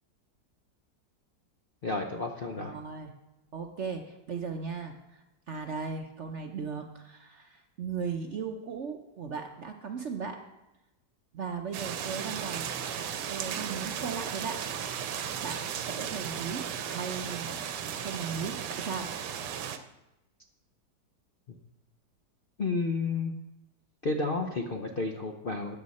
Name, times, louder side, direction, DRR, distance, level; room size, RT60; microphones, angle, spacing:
voice 1, 1.8-2.7 22.6-23.3 24.0-25.8, left 3 dB, 50° left, 3 dB, 0.6 m, -31 dB
voice 2, 2.6-3.1 3.5-10.4 11.3-12.7 13.3-14.6 15.4-17.5 18.0-19.1, right 5 dB, 55° right, 5 dB, 0.8 m, -37 dB
sound 1, 11.7-19.8, right 8 dB, 75° right, 1.3 m, -35 dB
13.0 x 8.9 x 4.2 m, 0.93 s
omnidirectional pair, 1.9 m